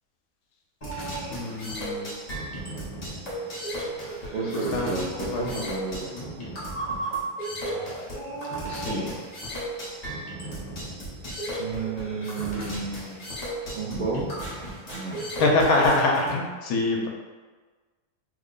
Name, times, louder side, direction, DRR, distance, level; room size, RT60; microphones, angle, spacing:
sound 1, 0.8-16.3, right 1 dB, 35° left, 0.7 m, -34 dB
voice 1, 1.3-2.1 4.4-4.9 5.2-5.6 8.7-9.1 15.4-17.1, left 2 dB, 75° left, 0 dB, 1.1 m, -25 dB
voice 2, 4.3-6.2 8.6-9.2 11.6-13.3 13.7-14.4 14.9-15.2, right 3 dB, 75° right, -6 dB, 0.5 m, -32 dB
3.2 x 2.1 x 3.7 m, 1.4 s
omnidirectional pair, 1.6 m